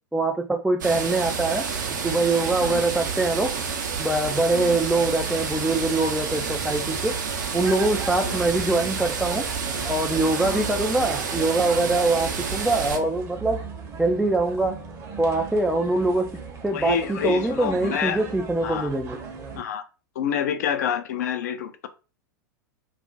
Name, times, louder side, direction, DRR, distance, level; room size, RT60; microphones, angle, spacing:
voice 1, 0.1-1.6 2.0-3.6 4.0-7.2 7.5-9.5 9.9-13.6 14.0-14.8 15.2-16.4 16.6-19.2, right 2 dB, 5° right, 0.3 m, -23 dB
sound 1, 0.8-13.0, right 6 dB, 65° right, 0.6 m, -29 dB
sound 2, 7.4-19.6, right 5 dB, 25° right, 0.8 m, -38 dB
voice 2, 16.7-18.2 18.6-18.9 19.6-19.8 20.2-21.9, left 8 dB, 60° left, 0.5 m, -28 dB
2.4 x 2.1 x 3.8 m
figure-of-eight pair, 90°, 10 cm